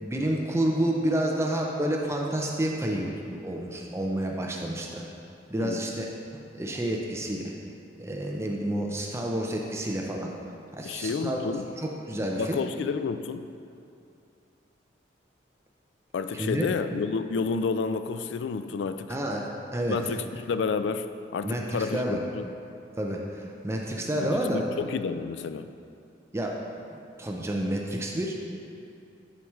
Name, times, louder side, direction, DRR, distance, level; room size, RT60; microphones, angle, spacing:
voice 1, 0.0-5.0 5.5-6.1 6.5-7.5 8.0-10.3 10.8-11.4 11.8-12.6 16.3-16.7 19.1-20.0 21.4-22.2 23.0-24.6 26.3-26.6 27.2-28.4, right 1 dB, 15° right, 0 dB, 0.5 m, -29 dB
voice 2, 10.8-11.7 12.4-13.5 16.1-19.2 19.9-22.4 24.2-25.7, left 5 dB, 70° left, 11 dB, 0.3 m, -30 dB
10.5 x 4.6 x 3.1 m, 2.6 s
head